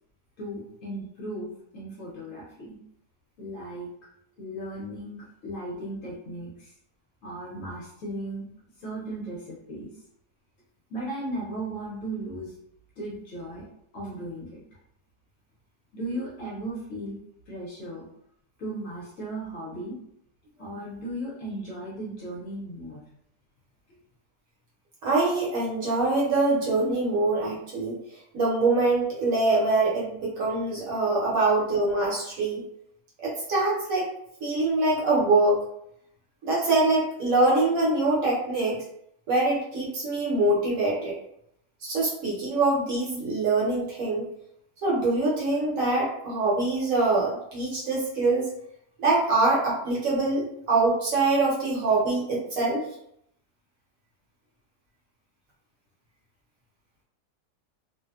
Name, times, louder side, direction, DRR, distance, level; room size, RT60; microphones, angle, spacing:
voice 1, 0.4-2.8 3.4-3.9 4.4-6.7 7.2-8.5 8.8-9.9 10.9-12.5 13.0-13.7 13.9-14.6 15.9-17.2 17.5-18.1 18.6-20.0 20.6-23.0, right 1 dB, 65° left, -4 dB, 0.9 m, -36 dB
voice 2, 25.0-28.0 28.3-32.6 33.2-34.1 34.4-35.6 36.4-38.8 39.3-41.2 41.8-44.3 44.8-48.5 49.0-52.9, right 2 dB, 60° right, -5 dB, 1.1 m, -24 dB
2.6 x 2.0 x 2.3 m, 0.73 s
omnidirectional pair, 1.7 m